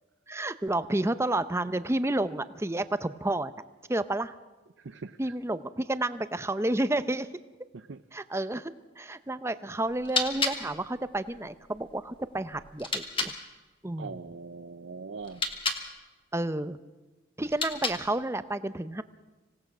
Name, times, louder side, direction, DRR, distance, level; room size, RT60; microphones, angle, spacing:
voice 1, 0.3-3.5 3.9-4.4 5.2-7.3 8.1-13.3 13.8-14.2 16.3-16.8 17.4-19.0, right 1 dB, 15° right, 13 dB, 0.6 m, -30 dB
voice 2, 4.8-5.2 7.7-8.0 14.0-15.4, right 4 dB, 65° right, 10 dB, 0.6 m, -41 dB
sound 1, 9.8-13.4 15.2-15.9 17.4-18.2, left 4 dB, 25° left, 1.8 m, -33 dB
26.0 x 17.5 x 6.1 m, 1.2 s
head